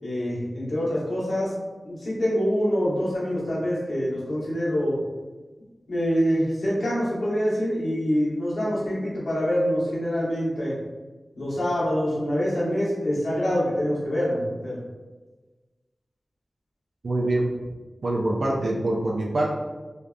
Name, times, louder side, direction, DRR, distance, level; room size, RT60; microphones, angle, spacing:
voice 1, 0.0-1.5 1.8-5.0 5.9-10.7 11.4-14.8, equal, 70° left, -8 dB, 0.9 m, -25 dB
voice 2, 17.0-17.5 18.0-19.5, right 1 dB, 70° right, -2 dB, 0.4 m, -24 dB
2.6 x 2.3 x 2.2 m, 1.3 s
wide cardioid pair, 70°, 0 cm